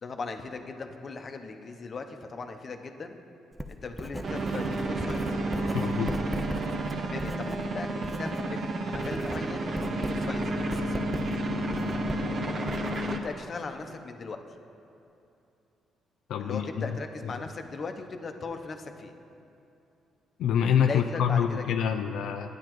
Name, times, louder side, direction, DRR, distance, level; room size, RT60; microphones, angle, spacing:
voice 1, 0.0-3.2 3.7-5.4 7.0-8.6 8.9-11.2 13.1-14.4 16.4-19.1 20.9-21.6, left 4 dB, 45° left, 5 dB, 0.7 m, -38 dB
Writing, 3.5-8.5 8.8-13.4, equal, 5° right, 0.4 m, -38 dB
sound 1, 4.2-13.2, right 1 dB, 50° right, 0.8 m, -31 dB
voice 2, 5.7-6.1 16.3-16.6 20.4-22.5, left 8 dB, 80° left, 5 dB, 0.4 m, -26 dB
13.0 x 9.7 x 3.0 m, 2.8 s
cardioid pair, 90°, 0 cm